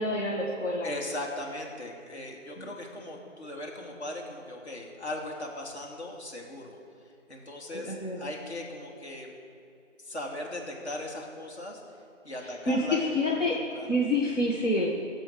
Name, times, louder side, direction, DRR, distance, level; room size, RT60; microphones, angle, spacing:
voice 1, 0.0-0.9 2.6-2.7 7.7-8.2 12.7-13.6 13.9-14.9, left 1 dB, 75° left, -2 dB, 1.8 m, -27 dB
voice 2, 0.8-6.8 7.3-9.3 10.0-11.8 12.2-14.0, left 1 dB, 60° left, 0 dB, 2.6 m, -38 dB
15.0 x 7.9 x 4.8 m, 2.6 s
figure-of-eight pair, 155°, 37 cm